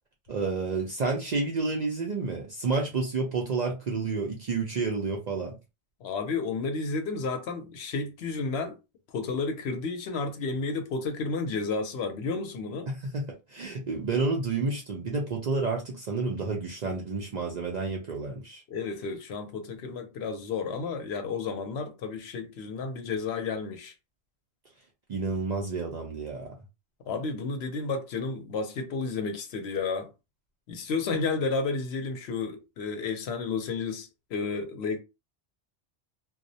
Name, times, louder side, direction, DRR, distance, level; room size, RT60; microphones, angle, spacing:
voice 1, 0.3-5.6 13.1-18.6 25.1-26.6, right 4 dB, 55° right, 0.5 m, -30 dB
voice 2, 6.0-8.8 9.1-12.9 18.7-23.9 27.1-30.1 30.7-35.0, left 4 dB, 70° left, 0.8 m, -32 dB
2.3 x 2.0 x 2.6 m
omnidirectional pair, 1.1 m